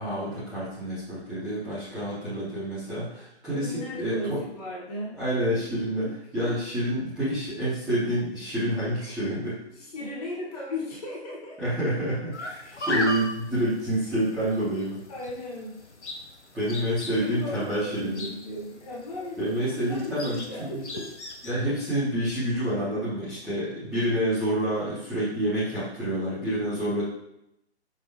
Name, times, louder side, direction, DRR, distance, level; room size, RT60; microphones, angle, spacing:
voice 1, 0.0-4.4 5.1-6.1 6.3-9.6 11.6-15.0 16.5-18.3 19.4-20.8 21.4-27.0, right 1 dB, ahead, -16 dB, 0.8 m, -28 dB
voice 2, 3.5-5.2 6.0-6.5 9.8-11.6 12.4-12.9 15.1-15.7 17.1-21.1, left 1 dB, 35° left, -4 dB, 1.3 m, -37 dB
sound 1, 12.3-21.5, left 1 dB, 85° left, 0.8 m, -37 dB
5.7 x 2.6 x 2.7 m, 0.81 s
figure-of-eight pair, 140°, 34 cm